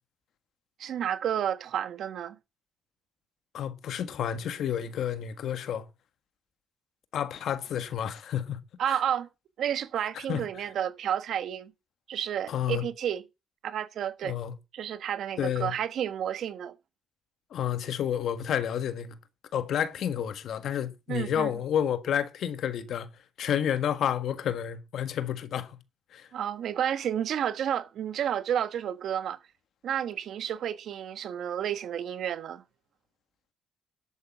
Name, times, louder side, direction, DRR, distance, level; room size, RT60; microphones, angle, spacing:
voice 1, 0.8-2.4 8.8-9.3 9.6-11.7 12.1-13.2 13.6-14.4 14.7-16.7 21.1-21.5 26.3-29.4 29.8-32.6, right 9 dB, 70° right, 1.3 m, -31 dB
voice 2, 3.5-5.9 7.1-9.0 10.3-10.4 12.5-12.8 14.2-14.5 15.4-15.7 17.5-19.2 19.5-23.1 23.4-25.8 26.1-26.3, left 9 dB, 70° left, 1.5 m, -30 dB
11.5 x 8.4 x 6.2 m
cardioid pair, 90°, 0 cm